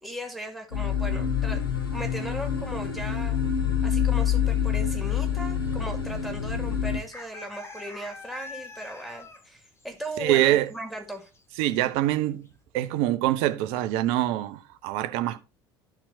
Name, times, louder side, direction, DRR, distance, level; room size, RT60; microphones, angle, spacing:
voice 1, 0.0-1.6 1.9-3.4 3.8-11.3, right 1 dB, ahead, 2.2 m, -37 dB
sound 1, 0.7-7.0, left 8 dB, 80° left, 1.1 m, -26 dB
sound 2, 3.8-4.5 4.7-4.9 5.2-5.8 6.1-6.2 7.0-11.4 11.7-11.9 12.3-12.5, left 3 dB, 20° left, 1.3 m, -46 dB
voice 2, 10.2-10.7 11.6-12.5 12.7-15.4, right 14 dB, 55° right, 0.7 m, -24 dB
13.0 x 4.4 x 2.7 m
figure-of-eight pair, 65°, 12 cm